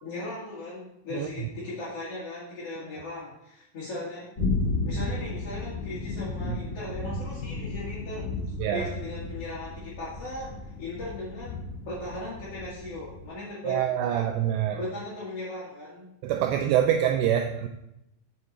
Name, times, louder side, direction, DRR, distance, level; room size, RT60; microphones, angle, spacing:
voice 1, 0.0-4.3 4.9-8.3 8.7-11.6 11.9-14.3 14.7-16.1, left 2 dB, 50° left, -8 dB, 2.0 m, -38 dB
sound 1, 4.4-13.3, left 3 dB, 30° left, 2.0 m, -33 dB
voice 2, 13.6-14.8 16.2-17.7, right 10 dB, 90° right, 6 dB, 2.5 m, -25 dB
9.6 x 7.2 x 4.2 m, 0.85 s
omnidirectional pair, 5.6 m